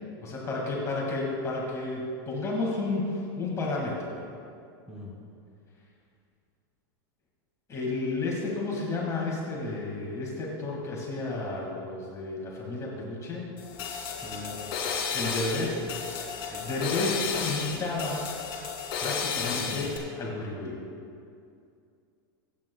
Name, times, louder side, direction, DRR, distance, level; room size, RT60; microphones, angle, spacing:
voice 1, 0.2-4.1 7.7-13.5 15.1-15.8 16.3-18.3 19.0-20.8, left 2 dB, 25° left, -3 dB, 2.0 m, -32 dB
sound 1, 13.6-20.0, left 6 dB, 45° left, 2.9 m, -33 dB
voice 2, 14.2-15.0 16.5-16.7 19.4-19.9, left 2 dB, 5° right, -3 dB, 2.6 m, -42 dB
25.5 x 8.9 x 2.3 m, 2.5 s
supercardioid pair, 135°, 13 cm